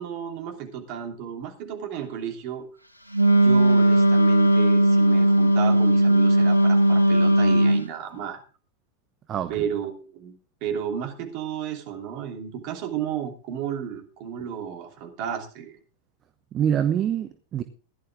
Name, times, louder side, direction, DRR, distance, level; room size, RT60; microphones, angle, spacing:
voice 1, 0.0-2.6 3.3-8.4 9.5-10.3 10.6-15.8, right 9 dB, 45° right, 3 dB, 3.1 m, -33 dB
Wind instrument woodwind instrument, 3.1-7.9, right 1 dB, 90° left, 1.1 m, -18 dB
voice 2, 9.3-9.7 16.5-17.6, right 9 dB, 30° right, 10 dB, 0.9 m, -25 dB
15.5 x 11.0 x 3.7 m, 0.38 s
figure-of-eight pair, 90°, 0 cm